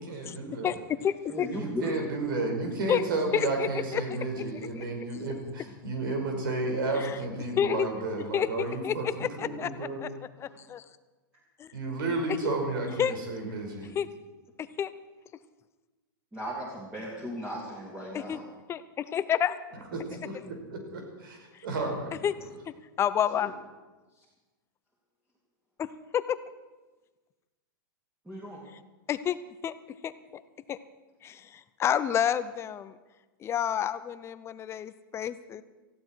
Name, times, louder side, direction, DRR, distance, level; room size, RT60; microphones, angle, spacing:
voice 1, 0.0-0.8 1.5-9.1 9.4-10.0 11.7-13.9 20.2-22.1, right 2 dB, 75° right, 2 dB, 5.3 m, -32 dB
voice 2, 0.6-1.5 2.9-3.0 3.3-4.0 4.4-4.5 4.8-4.9 6.9-7.2 7.6-7.9 8.3-10.1 10.4-10.8 11.6-11.7 12.3-12.5 13.0-13.2 13.9-14.1 14.6-14.9 18.1-18.4 18.7-19.5 21.5-21.7 22.2-22.3 22.7-23.5 25.8-26.4 28.7-28.8 29.1-29.8 30.0-30.4 30.7-30.8 31.2-33.0 33.4-35.6, left 9 dB, 25° left, 13 dB, 0.7 m, -30 dB
voice 3, 1.3-1.9 10.5-10.6 16.3-18.4 23.4-23.5 24.2-24.3 28.2-28.6, equal, 10° right, -5 dB, 3.3 m, -36 dB
19.0 x 15.0 x 4.6 m, 1.2 s
hypercardioid pair, 135°, 11 cm